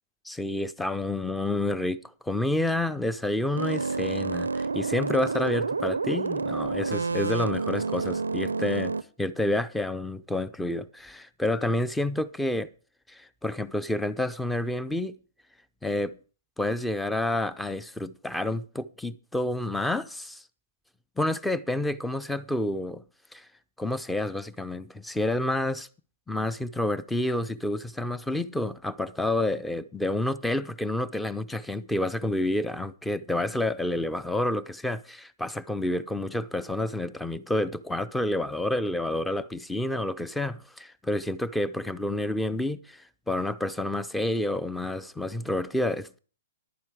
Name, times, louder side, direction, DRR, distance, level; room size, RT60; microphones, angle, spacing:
voice 1, 0.3-12.7 13.1-15.2 15.8-16.2 16.6-20.4 21.2-23.0 23.3-23.5 23.8-25.9 26.3-46.2, left 1 dB, 5° left, 0.5 m, -29 dB
sound 1, 3.6-9.0, right 4 dB, 90° right, 0.5 m, -29 dB
11.0 x 9.3 x 4.9 m
hypercardioid pair, 130°, 0 cm